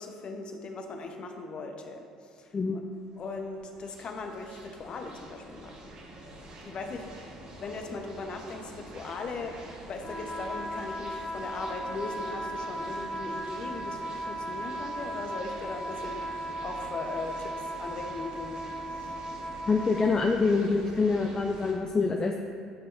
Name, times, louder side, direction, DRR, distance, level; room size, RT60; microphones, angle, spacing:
voice 1, 0.0-2.8 3.2-6.0 6.6-19.2, left 3 dB, 45° left, 4 dB, 0.9 m, -39 dB
sound 1, 2.6-21.7, right 1 dB, 50° right, 1.4 m, -47 dB
sound 2, 10.0-20.2, right 1 dB, 15° left, 1.7 m, -37 dB
voice 2, 19.7-22.4, left 4 dB, 30° left, 3 dB, 0.4 m, -25 dB
11.0 x 5.7 x 2.6 m, 2.2 s
hypercardioid pair, 60°, 2 cm